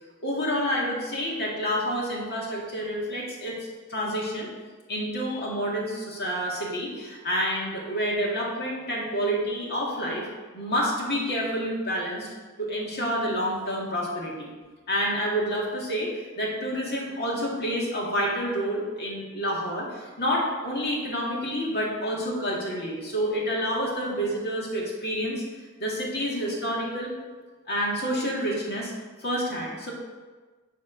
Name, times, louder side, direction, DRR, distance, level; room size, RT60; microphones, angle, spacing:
voice 1, 0.2-3.6 3.9-4.5 4.9-10.3 10.5-12.3 12.6-14.5 14.9-25.4 25.8-27.1 27.7-28.9 29.2-29.9, equal, 50° left, -3 dB, 2.1 m, -28 dB
9.6 x 3.7 x 6.1 m, 1.3 s
head